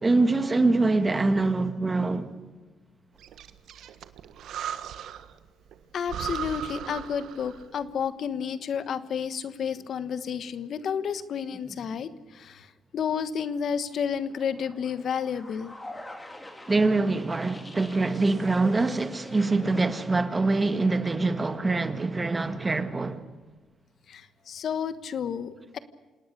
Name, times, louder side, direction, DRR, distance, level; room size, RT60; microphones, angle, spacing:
voice 1, 0.0-2.3 16.7-23.2, right 3 dB, 25° right, 1.9 m, -24 dB
Breathing, 3.2-5.4 5.7-5.8 6.1-7.8, right 9 dB, 75° right, 1.5 m, -37 dB
voice 2, 5.9-15.7 24.1-25.8, left 7 dB, 60° left, 1.3 m, -31 dB
sound 1, 11.5-12.3 13.9-19.8, left 1 dB, 15° left, 3.6 m, -45 dB
27.5 x 18.5 x 6.8 m
cardioid pair, 90°, 0 cm